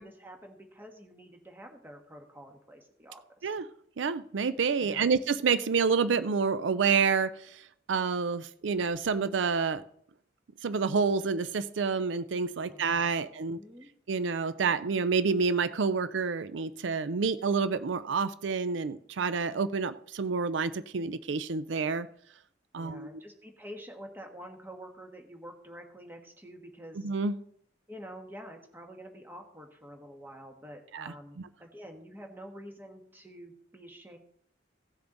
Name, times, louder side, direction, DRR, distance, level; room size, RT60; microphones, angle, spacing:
voice 1, 0.0-3.5 4.8-5.1 12.6-13.9 22.7-27.1 27.9-34.2, equal, 10° right, 3 dB, 1.5 m, -48 dB
voice 2, 4.0-7.3 7.9-9.8 10.6-13.6 14.1-22.1 22.7-23.1 27.0-27.4 30.9-31.1, right 5 dB, 85° right, 14 dB, 0.5 m, -28 dB
16.5 x 6.9 x 3.9 m, 0.67 s
head